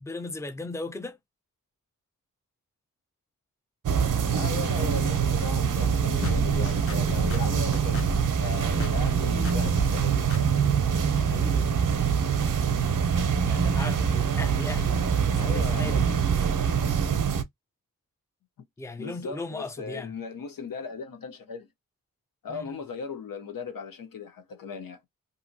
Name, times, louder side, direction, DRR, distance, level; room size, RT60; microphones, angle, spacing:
voice 1, 0.0-1.2 11.2-11.8 13.4-15.0 15.3-16.0 18.8-20.1 22.5-22.7, left 2 dB, 10° left, 0.5 m, -37 dB
sound 1, 3.9-17.4, right 7 dB, 70° right, 0.7 m, -24 dB
voice 2, 4.3-8.1 8.4-10.4 15.4-16.2 19.0-21.7 22.4-25.1, left 5 dB, 90° left, 0.8 m, -37 dB
sound 2, 6.2-8.3 8.8-9.2 9.4-10.0 10.3-10.4, left 2 dB, 40° left, 0.7 m, -34 dB
2.7 x 2.7 x 2.6 m
cardioid pair, 65°, 33 cm